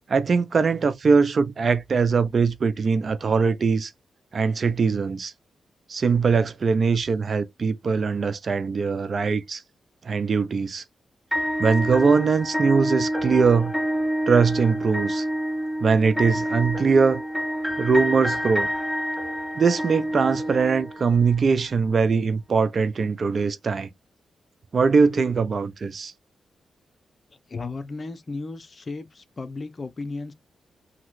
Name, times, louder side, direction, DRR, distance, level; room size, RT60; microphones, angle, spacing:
voice 1, 0.1-3.9 4.3-5.3 5.9-9.6 10.0-10.8 11.6-13.7 14.3-15.2 15.8-17.2 17.8-18.7 19.6-23.9 24.7-26.1, right 5 dB, 55° right, 0.6 m, -21 dB
sound 1, 11.3-21.3, equal, ahead, 1.3 m, -28 dB
voice 2, 27.5-30.3, left 3 dB, 45° left, 0.7 m, -34 dB
2.9 x 2.9 x 2.5 m
supercardioid pair, 45°, 0 cm